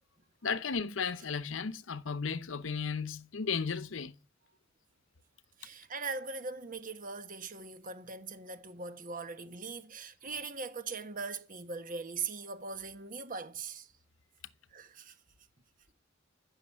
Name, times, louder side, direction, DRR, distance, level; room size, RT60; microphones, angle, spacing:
voice 1, 0.4-4.1, left 5 dB, 80° left, 0.8 m, -34 dB
voice 2, 5.6-13.9 14.7-15.1, right 4 dB, 45° right, 1.4 m, -40 dB
15.0 x 6.4 x 8.5 m
head